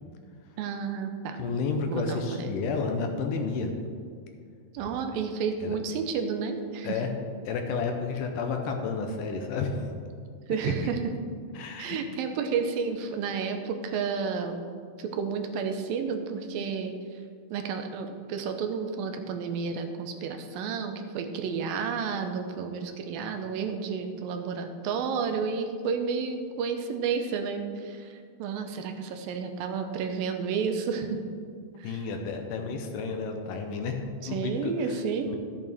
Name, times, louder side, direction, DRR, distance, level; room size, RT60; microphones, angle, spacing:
voice 1, 0.6-1.4 1.9-2.6 4.7-7.0 10.5-11.0 11.8-14.6 15.0-17.2 17.5-31.2 31.8-32.0 34.2-35.4, right 5 dB, 80° right, 6 dB, 2.5 m, -31 dB
voice 2, 1.4-3.7 5.6-5.8 6.8-7.1 7.5-9.9 10.6-10.7 11.6-12.0 31.8-34.0 34.3-35.0 35.3-35.4, left 4 dB, 75° left, 4 dB, 2.2 m, -31 dB
13.5 x 8.4 x 3.5 m, 2.2 s
omnidirectional pair, 4.2 m